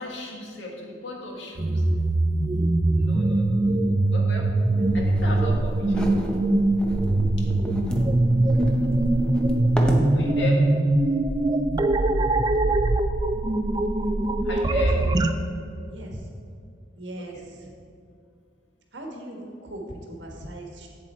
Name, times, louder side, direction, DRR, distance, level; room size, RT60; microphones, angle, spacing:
voice 1, 0.0-1.8 3.0-4.5 4.9-6.1 10.1-10.7 14.4-15.0 17.2-17.4, left 2 dB, 85° left, 0 dB, 1.6 m, -35 dB
sound 1, 1.6-15.3, right 2 dB, 20° right, 0.3 m, -22 dB
sound 2, 4.8-10.1, equal, 5° left, 0.7 m, -31 dB
voice 2, 14.7-15.1 15.9-16.3 17.0-17.7 18.9-20.9, right 1 dB, 75° right, 0 dB, 1.4 m, -39 dB
7.8 x 7.6 x 4.3 m, 2.4 s
head